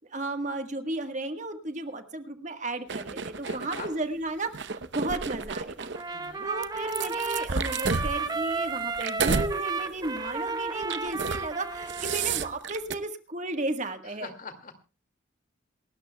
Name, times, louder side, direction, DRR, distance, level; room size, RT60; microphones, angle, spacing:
voice 1, 0.1-6.2 6.4-14.3, right 2 dB, 40° right, 7 dB, 1.4 m, -34 dB
sound 1, 2.9-3.9 4.5-6.0 6.6-9.5 9.9-10.2 10.8-11.4 11.7-12.9, right 5 dB, 65° right, 0.8 m, -31 dB
voice 2, 3.4-3.9 6.1-6.5 14.2-14.8, left 4 dB, 45° left, 7 dB, 2.2 m, -43 dB
Trumpet, 6.0-12.5, right 4 dB, 20° right, 0.9 m, -33 dB
27.5 x 13.0 x 2.2 m, 0.32 s
head